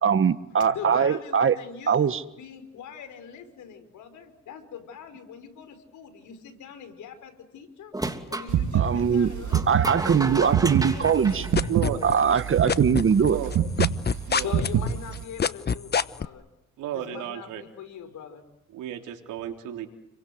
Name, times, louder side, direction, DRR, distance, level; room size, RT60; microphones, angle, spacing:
voice 1, 0.0-1.6 1.9-2.2 8.7-9.3 9.7-11.4 12.0-13.4, right 7 dB, 45° right, 12 dB, 1.7 m, -21 dB
voice 2, 0.7-7.9 8.3-9.9 10.3-11.7 14.4-16.4 16.9-18.4, left 7 dB, 75° left, 8 dB, 5.6 m, -42 dB
sound 1, 7.9-8.5 9.5-12.2, right 2 dB, 10° right, 3.0 m, -33 dB
sound 2, 8.5-15.2, right 9 dB, 70° right, 3.3 m, -25 dB
sound 3, 11.0-12.4 12.7-16.3, left 6 dB, 35° left, 1.0 m, -25 dB
voice 3, 11.7-12.0 13.2-13.5 14.3-14.5 16.8-17.6 18.7-19.9, right 11 dB, 90° right, 4 dB, 3.6 m, -33 dB
30.0 x 23.5 x 8.1 m, 0.89 s
cardioid pair, 90°, 30 cm